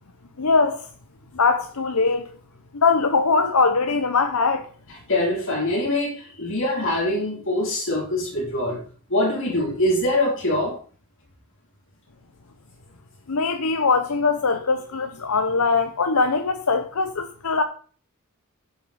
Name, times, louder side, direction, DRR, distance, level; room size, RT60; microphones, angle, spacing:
voice 1, 0.4-0.9 1.3-2.3 2.7-4.7 13.3-17.6, left 4 dB, 80° left, 0.9 m, -21 dB
voice 2, 4.9-8.8 9.1-10.8, left 1 dB, 60° left, 3.6 m, -24 dB
8.0 x 8.0 x 5.0 m
head